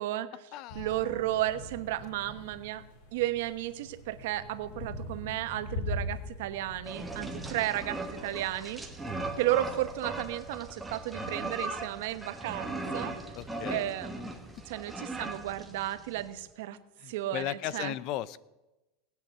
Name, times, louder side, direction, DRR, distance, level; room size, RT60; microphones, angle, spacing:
voice 1, 0.0-0.4 0.7-2.8 3.1-8.8 9.4-13.2 13.7-14.1 14.7-16.8 17.1-18.0, right 14 dB, 70° right, 12 dB, 1.1 m, -33 dB
voice 2, 0.5-1.0 13.4-13.9 17.0-18.4, left 13 dB, 45° left, 20 dB, 0.5 m, -36 dB
sound 1, 0.7-10.6, left 1 dB, 80° left, 5.8 m, -43 dB
sound 2, 6.8-16.3, right 2 dB, 5° right, 1.5 m, -38 dB
18.5 x 8.8 x 7.8 m, 1.0 s
supercardioid pair, 160°, 0 cm